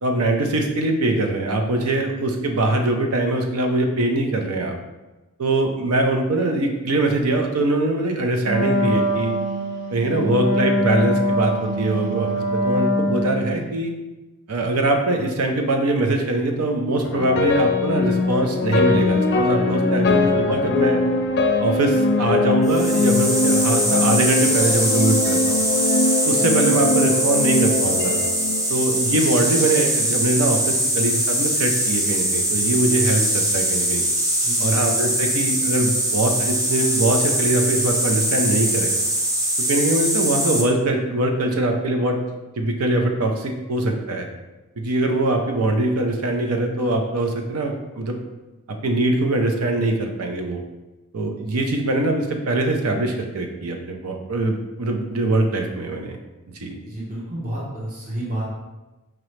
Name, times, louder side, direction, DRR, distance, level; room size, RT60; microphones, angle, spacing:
voice 1, 0.0-4.8 5.4-9.3 9.9-13.9 14.5-21.0 21.6-25.6 26.2-28.2 28.7-34.0 34.6-38.9 39.6-42.2 42.6-44.3 44.8-48.2 48.8-50.6 51.1-56.2 56.6-56.8, right 2 dB, 75° right, 3 dB, 0.7 m, -22 dB
Wind instrument woodwind instrument, 8.4-13.6, equal, 55° right, 1.4 m, -23 dB
sound 1, 17.0-29.3, left 3 dB, 50° left, 0.4 m, -21 dB
sound 2, 22.7-40.6, right 1 dB, 15° right, 0.7 m, -22 dB
voice 2, 56.8-58.4, right 1 dB, 40° right, -7 dB, 1.0 m, -30 dB
5.0 x 3.0 x 3.2 m, 1.1 s
head